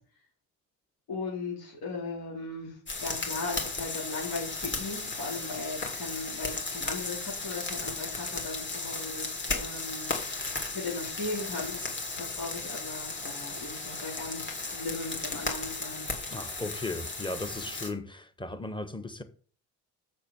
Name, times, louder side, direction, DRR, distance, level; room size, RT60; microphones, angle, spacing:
voice 1, 1.1-16.1, left 3 dB, 85° left, 4.3 m, -38 dB
sound 1, 2.9-17.9, left 3 dB, 30° left, 2.6 m, -35 dB
voice 2, 16.3-19.2, left 2 dB, 15° left, 1.2 m, -36 dB
6.5 x 6.5 x 6.9 m
cardioid pair, 110°, 36 cm